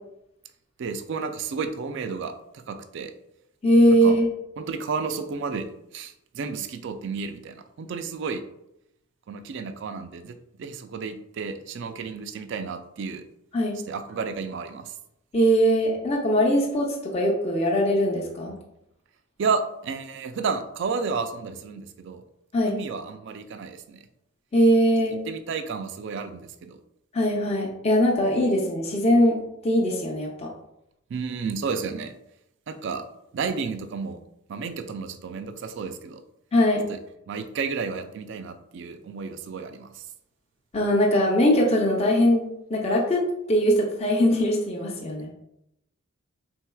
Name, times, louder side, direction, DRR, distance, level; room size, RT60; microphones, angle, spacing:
voice 1, 0.8-3.1 4.0-4.2 4.6-5.7 5.9-8.4 9.3-13.2 13.9-14.9 19.4-22.2 22.6-24.1 25.3-26.8 31.1-32.1 32.7-33.0 33.3-34.2 34.5-36.2 36.9-37.0 37.3-40.0, right 5 dB, 55° right, 8 dB, 0.3 m, -32 dB
voice 2, 3.6-4.3 13.5-13.7 15.3-18.5 22.5-22.7 24.5-25.2 27.1-29.4 29.6-30.5 36.5-36.8 40.7-43.2 43.5-45.3, equal, 30° left, -2 dB, 0.6 m, -21 dB
4.4 x 3.7 x 2.2 m, 0.82 s
head